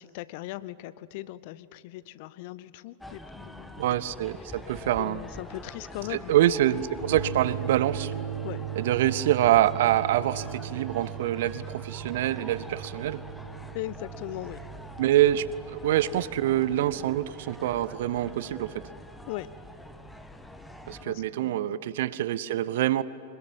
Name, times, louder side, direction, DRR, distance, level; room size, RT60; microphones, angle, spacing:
voice 1, 0.0-3.8 4.4-4.5 5.0-6.3 8.4-8.7 13.7-14.7 19.3-19.5 21.0-21.8, left 16 dB, 50° left, 18 dB, 0.7 m, -39 dB
sound 1, 3.0-21.1, left 1 dB, 5° left, 1.4 m, -45 dB
voice 2, 3.8-5.2 6.1-8.1 8.8-13.2 15.0-18.8 20.9-23.0, right 13 dB, 55° right, 19 dB, 0.8 m, -25 dB
sound 2, 7.0-21.5, right 9 dB, 75° right, 3.1 m, -39 dB
25.5 x 21.5 x 8.9 m, 2.9 s
figure-of-eight pair, 90°, 0 cm